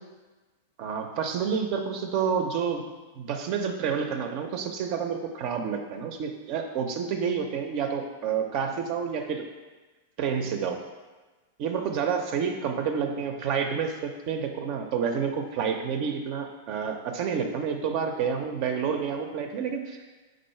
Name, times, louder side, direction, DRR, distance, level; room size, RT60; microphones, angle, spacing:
voice 1, 0.8-2.8 3.2-9.5 10.2-10.8 11.6-20.0, right 6 dB, 50° right, 4 dB, 0.4 m, -29 dB
4.5 x 2.5 x 4.3 m, 1.2 s
hypercardioid pair, 115°, 0 cm